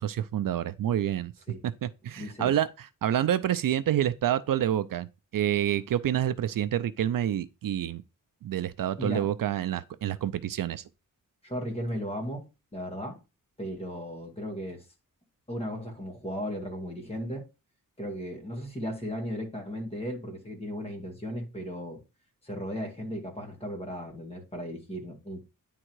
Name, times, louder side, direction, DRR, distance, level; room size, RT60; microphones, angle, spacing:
voice 1, 0.0-1.3 1.6-5.1 5.3-8.0 8.4-10.8, right 11 dB, 75° right, 0.5 m, -28 dB
voice 2, 2.2-2.6 9.0-9.3 11.4-12.5 12.7-13.2 13.6-14.9 15.5-17.4 18.0-22.0 22.4-25.4, equal, 20° left, 2.2 m, -36 dB
9.9 x 3.8 x 4.6 m
wide cardioid pair, 165°, 34 cm